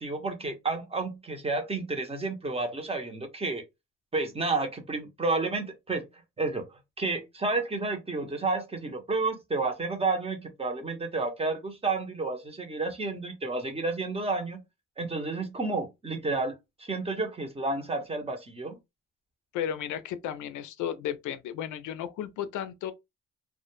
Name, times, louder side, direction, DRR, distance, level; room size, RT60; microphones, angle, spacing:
voice 1, 0.0-3.6 4.1-6.0 6.4-14.6 15.0-18.8, right 3 dB, 20° right, 0.7 m, -31 dB
voice 2, 19.5-22.9, left 10 dB, 80° left, 0.5 m, -34 dB
2.1 x 2.0 x 3.0 m
cardioid pair, 90°, 30 cm